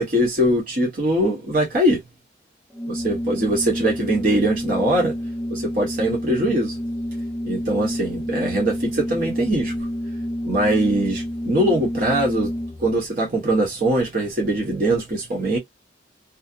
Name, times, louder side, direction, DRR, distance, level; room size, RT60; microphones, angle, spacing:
voice 1, 0.0-2.0 2.9-5.1 5.5-6.8 7.4-9.7 10.4-12.5 12.8-15.6, right 1 dB, 45° right, 0.9 m, -22 dB
Organ, 2.7-13.0, equal, 15° left, 0.5 m, -29 dB
2.5 x 2.0 x 2.5 m
head